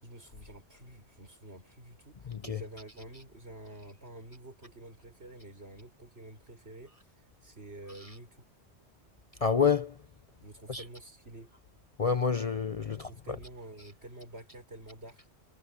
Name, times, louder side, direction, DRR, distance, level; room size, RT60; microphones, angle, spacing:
voice 1, 0.0-8.5 10.4-11.5 12.9-15.3, right 1 dB, 70° right, 6.3 m, -49 dB
voice 2, 2.3-2.6 9.4-10.0 10.7-10.8 12.0-13.1, left 6 dB, 40° left, 0.6 m, -28 dB
omnidirectional pair, 1.1 m